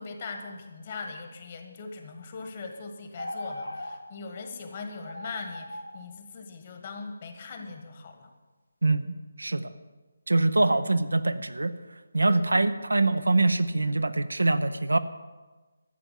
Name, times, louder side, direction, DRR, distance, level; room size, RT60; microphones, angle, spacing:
voice 1, 0.0-8.3 10.7-10.8 12.2-12.7, left 4 dB, 35° left, 5 dB, 1.6 m, -40 dB
sound 1, 3.2-4.0 4.4-4.5 5.0-6.0, left 1 dB, 80° left, 1.2 m, -38 dB
voice 2, 8.8-9.7 10.3-11.7 12.1-15.0, right 2 dB, 70° right, 11 dB, 0.7 m, -24 dB
13.5 x 7.8 x 7.4 m, 1.2 s
figure-of-eight pair, 150°, 0 cm